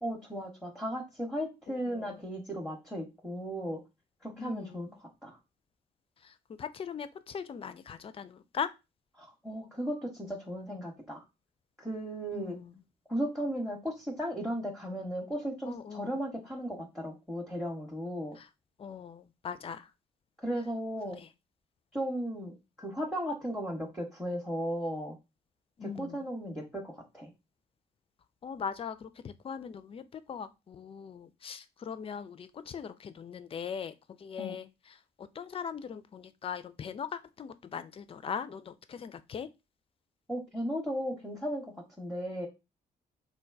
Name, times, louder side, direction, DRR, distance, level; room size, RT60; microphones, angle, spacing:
voice 1, 0.0-3.8 4.2-5.4 9.2-11.2 11.8-12.6 13.1-18.4 20.4-21.2 21.9-25.2 25.8-27.3 34.4-34.6 40.3-42.5, equal, ahead, 0.7 m, -36 dB
voice 2, 4.4-4.9 6.2-8.7 12.3-12.7 15.6-16.1 18.4-18.5 18.8-19.9 21.2-21.3 25.8-26.3 28.4-34.7 35.2-39.5, left 7 dB, 25° left, 0.3 m, -40 dB
3.8 x 2.2 x 2.4 m
figure-of-eight pair, 40°, 21 cm